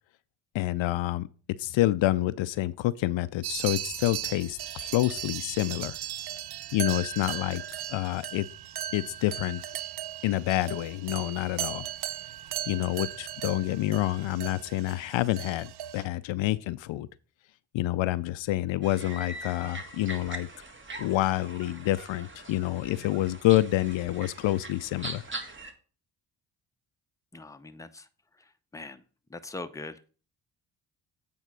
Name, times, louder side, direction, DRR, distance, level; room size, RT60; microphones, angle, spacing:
voice 1, 0.5-1.3 1.6-6.0 6.7-7.6 7.9-8.5 8.9-9.6 10.2-11.9 12.7-17.1 17.7-20.5 21.0-25.2, left 16 dB, 70° left, 0.5 m, -28 dB
sound 1, 3.4-16.0, right 11 dB, 55° right, 0.6 m, -37 dB
sound 2, 18.8-25.7, right 2 dB, 25° right, 1.5 m, -42 dB
voice 2, 27.3-28.1 28.7-29.0 29.3-30.2, left 2 dB, 5° left, 0.7 m, -41 dB
8.2 x 3.5 x 6.1 m
supercardioid pair, 55°, 49 cm